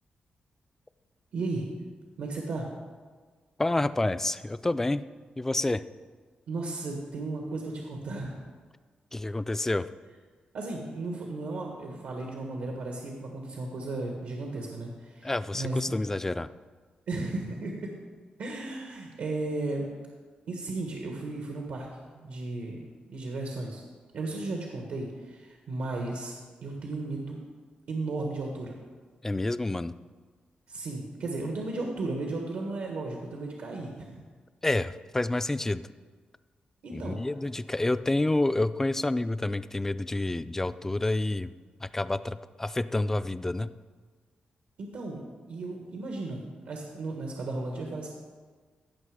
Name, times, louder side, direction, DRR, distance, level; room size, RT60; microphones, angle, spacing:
voice 1, 1.3-1.7 2.2-2.7 6.5-8.4 10.5-15.9 17.1-17.9 18.4-19.9 20.5-21.9 22.1-22.8 23.1-23.8 24.1-26.3 26.6-27.4 27.9-28.7 30.7-34.2 36.8-37.2 44.8-45.2 45.5-48.1, right 2 dB, 80° right, 1 dB, 1.4 m, -35 dB
voice 2, 3.6-5.0 5.4-5.8 9.1-9.9 15.2-16.5 29.2-29.9 34.6-35.9 36.9-41.5 41.8-43.7, left 2 dB, 15° left, 14 dB, 0.3 m, -28 dB
15.5 x 5.9 x 4.9 m, 1.5 s
wide cardioid pair, 120°, 3 cm